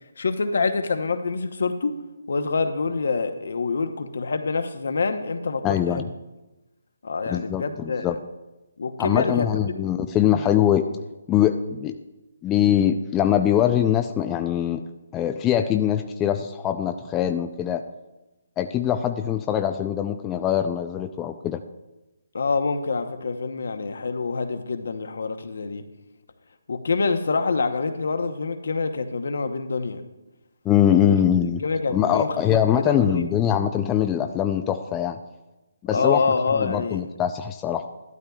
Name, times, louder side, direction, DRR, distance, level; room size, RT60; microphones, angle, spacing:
voice 1, 0.2-2.0 2.3-6.1 7.0-8.1 8.8-9.9 10.3-10.5 22.3-25.8 26.7-30.0 30.9-31.2 31.6-33.3 35.9-37.0, left 4 dB, 65° left, 8 dB, 0.9 m, -26 dB
voice 2, 5.6-6.1 7.3-8.2 9.0-10.9 11.3-12.0 12.4-14.9 15.1-17.8 18.6-21.6 30.7-31.6 31.9-35.2 35.9-37.9, left 10 dB, 15° left, 6 dB, 0.4 m, -22 dB
12.0 x 12.0 x 2.4 m, 1.1 s
figure-of-eight pair, 150°, 0 cm